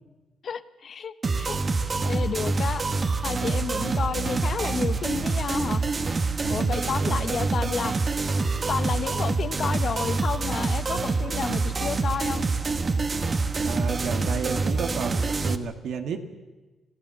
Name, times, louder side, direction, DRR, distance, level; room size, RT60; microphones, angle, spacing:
voice 1, 0.4-1.6 2.0-2.8 3.2-5.8 6.5-7.9 8.7-12.4, left 6 dB, 55° left, 12 dB, 1.0 m, -31 dB
sound 1, 1.2-15.5, right 3 dB, 40° right, 1.4 m, -26 dB
voice 2, 6.4-7.4 13.6-16.2, right 5 dB, 75° right, 6 dB, 1.9 m, -32 dB
26.5 x 15.0 x 7.2 m, 1.2 s
supercardioid pair, 60°, 0 cm